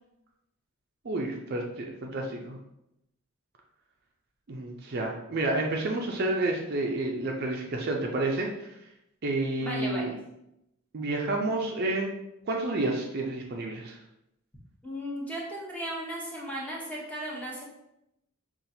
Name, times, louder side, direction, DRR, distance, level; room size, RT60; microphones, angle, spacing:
voice 1, 1.0-2.6 4.5-8.7 9.2-10.1 10.9-12.1 12.5-14.0, right 2 dB, 45° right, 1 dB, 0.4 m, -30 dB
voice 2, 9.6-10.2 14.8-17.6, equal, 5° left, -4 dB, 0.8 m, -36 dB
5.4 x 2.4 x 2.7 m, 0.86 s
head